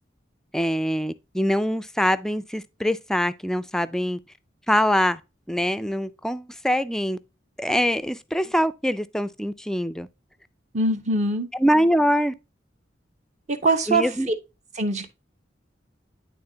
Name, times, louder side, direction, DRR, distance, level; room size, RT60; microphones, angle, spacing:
voice 1, 0.5-4.2 4.7-5.2 5.5-7.2 7.6-10.1 11.6-12.3 13.9-14.3, equal, 5° left, 0.4 m, -23 dB
voice 2, 10.7-11.5 13.5-14.0 14.7-15.1, right 2 dB, 40° right, 1.0 m, -22 dB
10.5 x 3.7 x 2.8 m
head